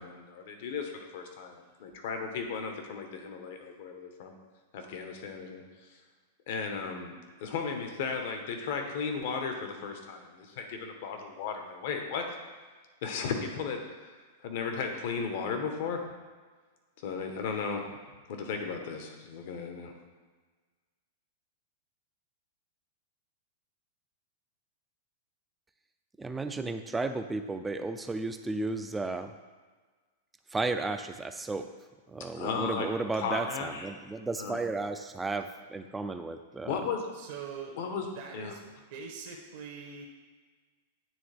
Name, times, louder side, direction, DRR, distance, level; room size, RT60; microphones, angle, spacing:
voice 1, 0.0-4.3 4.7-5.6 5.9-6.0 6.5-7.1 7.4-12.2 13.0-16.0 17.0-17.9 18.3-19.9 32.3-32.9 33.1-33.9 34.4-34.6 36.7-37.1 37.8-38.0 38.3-38.5, left 5 dB, 60° left, 4 dB, 1.0 m, -35 dB
voice 2, 26.2-29.3 30.5-31.7 32.1-36.8, right 3 dB, 10° right, 8 dB, 0.4 m, -33 dB
voice 3, 37.1-37.8 38.1-38.6 38.9-40.1, right 6 dB, 65° right, 2 dB, 1.1 m, -43 dB
9.1 x 3.5 x 3.4 m, 1.4 s
hypercardioid pair, 135°, 0 cm